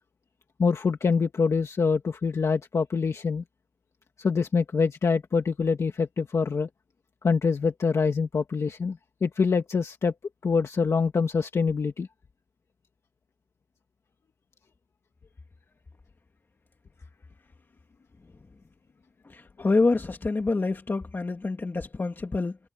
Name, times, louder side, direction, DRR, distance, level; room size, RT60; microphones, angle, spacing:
voice 1, 0.6-3.4 4.2-6.7 7.2-10.1 10.4-12.1, left 5 dB, 80° left, 1.7 m, -25 dB
voice 2, 19.2-22.6, left 3 dB, 45° left, 2.5 m, -27 dB
wide cardioid pair, 70°, 5 cm